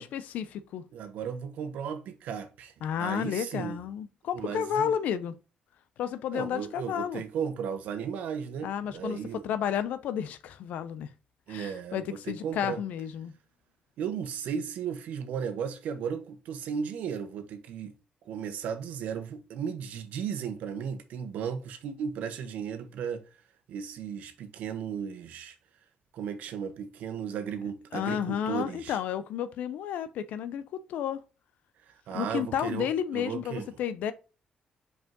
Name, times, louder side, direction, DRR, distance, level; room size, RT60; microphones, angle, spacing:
voice 1, 0.0-0.8 2.8-5.3 6.0-7.2 8.6-11.1 11.5-13.3 27.9-31.2 32.1-34.1, left 9 dB, 90° left, 0.5 m, -32 dB
voice 2, 0.9-2.7 3.0-3.8 4.3-4.9 6.3-9.4 11.5-12.8 14.0-18.0 18.2-23.2 23.7-25.5 26.1-29.0 31.9-32.9 33.1-33.7, right 7 dB, 90° right, 1.1 m, -35 dB
5.4 x 4.7 x 3.7 m
cardioid pair, 120°, 3 cm